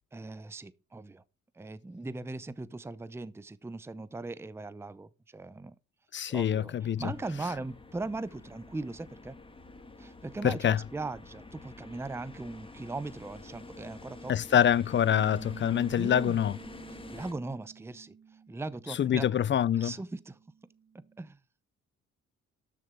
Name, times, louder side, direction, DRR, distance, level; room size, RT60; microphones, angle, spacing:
voice 1, 0.1-1.2 1.5-5.8 6.3-9.4 10.0-14.6 15.9-16.5 17.1-18.1 18.5-19.4 19.8-20.4 20.9-21.4, right 3 dB, 10° right, 0.6 m, -39 dB
voice 2, 6.1-7.1 10.4-10.8 14.3-16.6 19.0-19.9, left 9 dB, 40° left, 0.5 m, -25 dB
sound 1, 7.0-17.3, left 2 dB, 15° left, 1.7 m, -48 dB
Bass guitar, 15.0-19.4 19.7-21.3, right 6 dB, 35° right, 1.0 m, -50 dB
12.5 x 6.9 x 4.9 m
cardioid pair, 90°, 30 cm